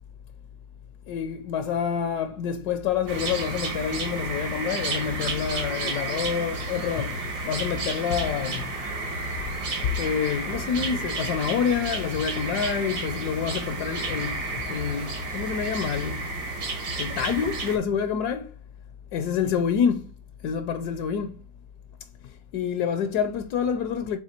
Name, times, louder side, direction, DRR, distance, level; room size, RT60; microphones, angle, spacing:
voice 1, 1.1-8.7 10.0-16.3 17.0-18.5 19.1-20.1 20.4-21.4 22.5-24.2, left 7 dB, 75° left, 1.1 m, -27 dB
sound 1, 3.1-17.8, right 2 dB, 75° right, 2.2 m, -31 dB
7.4 x 3.3 x 4.3 m
omnidirectional pair, 1.8 m